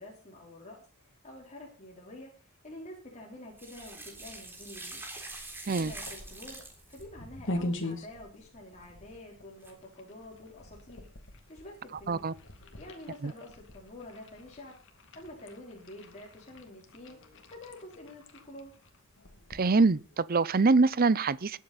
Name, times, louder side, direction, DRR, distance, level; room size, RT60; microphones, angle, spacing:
voice 1, 0.0-5.0 5.4-6.6 6.9-12.2 12.5-14.8 15.1-18.7, left 1 dB, 35° left, 3.7 m, -48 dB
sound 1, 3.5-7.0 9.6-9.7, right 2 dB, 10° right, 3.5 m, -44 dB
sound 2, 5.7-20.2, left 1 dB, 60° left, 2.4 m, -43 dB
voice 2, 19.5-21.6, right 4 dB, 45° right, 0.6 m, -24 dB
20.5 x 8.5 x 4.1 m
head